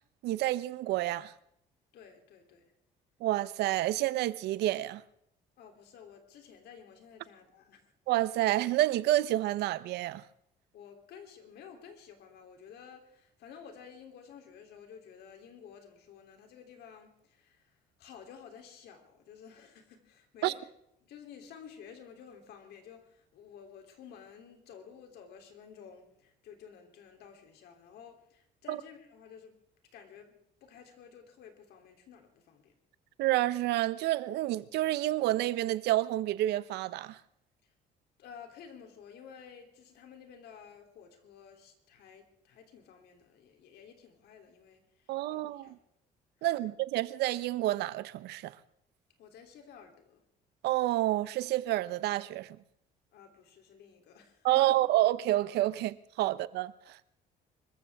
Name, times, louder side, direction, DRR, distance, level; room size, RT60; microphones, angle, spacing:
voice 1, 0.2-1.3 3.2-5.0 8.1-10.2 20.4-20.5 28.7-28.8 33.2-37.2 45.1-45.8 46.4-48.6 50.6-52.6 54.4-57.0, right 15 dB, 80° right, 0.8 m, -29 dB
voice 2, 1.9-2.7 5.6-7.8 10.7-20.6 21.0-29.5 29.9-32.7 37.6-37.7 38.2-45.8 46.4-46.7 49.2-50.2 53.1-54.8, left 7 dB, 75° left, 3.1 m, -52 dB
25.0 x 14.5 x 3.5 m
cardioid pair, 110°, 17 cm